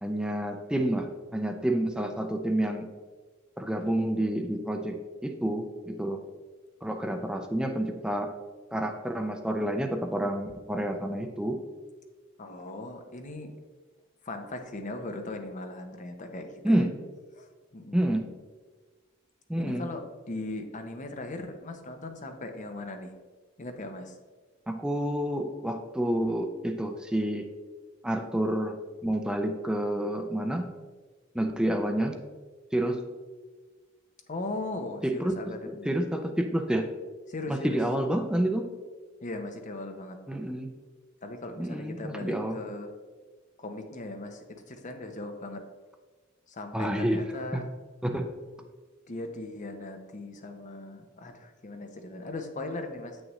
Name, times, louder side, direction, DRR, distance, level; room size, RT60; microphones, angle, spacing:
voice 1, 0.0-2.9 3.6-6.2 6.8-8.3 8.7-11.6 16.6-16.9 17.9-18.3 19.5-19.9 24.7-27.5 28.0-28.8 29.0-30.7 31.3-32.2 32.7-33.0 35.0-35.6 35.8-36.9 37.5-38.7 40.3-40.7 41.6-42.6 46.7-47.2 47.5-47.6 48.0-48.3, right 1 dB, 5° right, 4 dB, 0.4 m, -29 dB
voice 2, 12.4-13.5 14.2-16.9 17.4-17.5 17.7-18.0 19.6-23.1 23.6-24.2 34.3-35.9 37.3-37.8 39.2-40.2 41.2-42.9 43.6-45.7 46.5-47.7 49.1-53.2, left 2 dB, 40° left, 6 dB, 0.7 m, -38 dB
7.7 x 6.3 x 3.1 m, 1.4 s
head